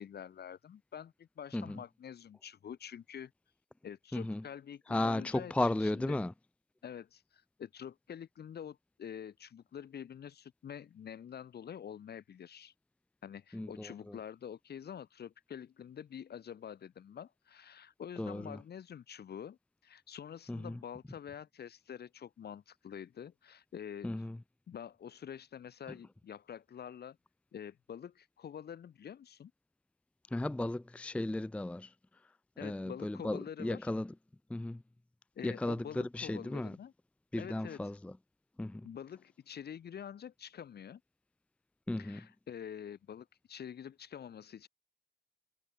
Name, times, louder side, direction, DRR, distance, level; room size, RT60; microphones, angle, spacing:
voice 1, 0.0-3.3 3.8-6.2 6.8-12.7 13.2-24.1 24.7-27.2 27.5-29.5 32.6-33.9 35.4-36.9 37.4-37.8 38.8-41.0 42.0-44.7, left 8 dB, 55° left, 2.2 m, -47 dB
voice 2, 4.1-4.4 4.9-6.3 13.5-14.2 18.2-18.6 20.5-20.8 24.0-24.4 30.3-31.9 32.6-34.1 34.5-34.8 35.4-36.8 37.3-38.1 38.6-38.9 41.9-42.2, left 1 dB, 5° left, 0.5 m, -35 dB
cardioid pair, 90°, 20 cm